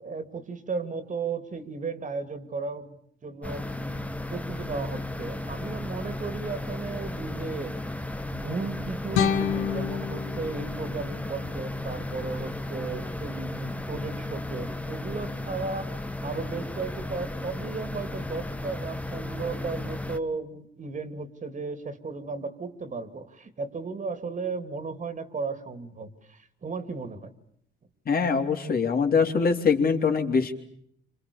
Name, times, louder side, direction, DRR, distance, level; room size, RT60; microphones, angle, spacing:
voice 1, 0.0-2.9 3.2-4.0 4.3-7.8 8.3-15.9 16.2-27.3, right 4 dB, 40° right, 10 dB, 2.9 m, -35 dB
sound 1, 3.4-20.2, left 1 dB, 5° left, 1.5 m, -34 dB
sound 2, 9.1-12.2, left 8 dB, 90° left, 2.3 m, -30 dB
voice 2, 28.1-30.5, left 5 dB, 50° left, 3 dB, 4.0 m, -23 dB
28.0 x 27.0 x 7.1 m, 0.69 s
cardioid pair, 90°, 20 cm